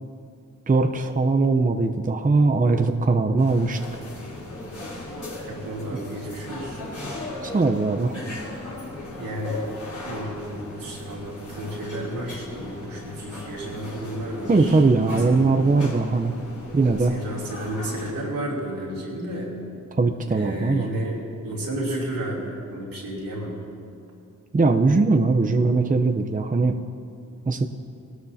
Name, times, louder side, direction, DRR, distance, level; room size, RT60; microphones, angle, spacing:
voice 1, 0.7-3.8 5.9-6.0 7.4-8.2 14.5-16.3 16.7-17.1 20.0-20.9 24.5-26.8 27.5-27.6, right 3 dB, 25° right, 5 dB, 0.7 m, -20 dB
sound 1, 3.4-18.1, left 2 dB, 60° left, 3.4 m, -37 dB
voice 2, 5.5-6.8 9.2-9.7 10.0-15.5 17.1-19.5 20.3-23.6 25.4-25.5, right 1 dB, 85° right, -5 dB, 3.0 m, -32 dB
18.0 x 13.0 x 2.8 m, 2.4 s
cardioid pair, 50°, 33 cm